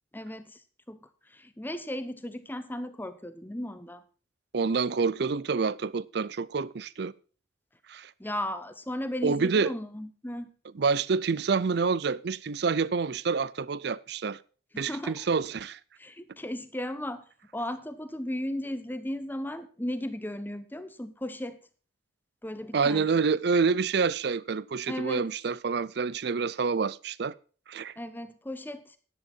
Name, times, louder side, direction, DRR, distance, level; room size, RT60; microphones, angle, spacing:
voice 1, 0.1-0.6 0.9-1.0 1.3-4.0 8.2-10.5 14.7-15.1 16.0-17.2 17.5-21.6 22.4-23.1 24.9-25.3 28.0-29.0, left 1 dB, 10° left, 0.9 m, -35 dB
voice 2, 4.5-7.1 7.9-8.1 9.2-9.7 10.8-14.4 14.8-15.8 22.7-27.3 27.7-27.9, right 5 dB, 60° right, 0.5 m, -27 dB
10.5 x 10.5 x 4.4 m
head